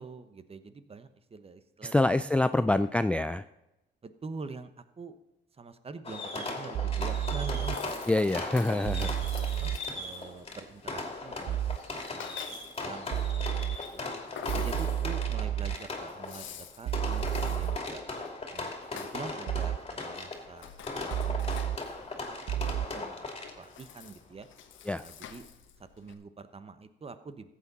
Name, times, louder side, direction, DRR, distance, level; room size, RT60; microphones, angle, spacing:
voice 1, 0.0-1.9 2.3-2.7 4.0-5.2 5.6-8.1 8.7-9.1 9.6-11.8 12.0-13.5 13.9-14.0 14.5-18.0 18.5-21.9 22.1-24.5 25.0-25.5 25.8-27.5, right 4 dB, 30° right, 11 dB, 1.0 m, -46 dB
voice 2, 1.8-3.5 8.1-9.1 24.9-25.0, left 2 dB, 5° left, 11 dB, 0.3 m, -26 dB
Fireworks, 6.0-23.8, left 3 dB, 30° left, 2.7 m, -38 dB
sound 1, 6.7-7.8 8.9-9.8 11.5-11.8 13.1-13.8 14.5-15.8 16.9-17.8 19.5-19.8 21.1-21.8 22.5-22.9, right 12 dB, 65° right, 0.5 m, -31 dB
Rattle (instrument), 7.2-26.1, left 8 dB, 75° left, 1.3 m, -49 dB
14.5 x 8.5 x 4.0 m, 0.96 s
cardioid pair, 90°, 20 cm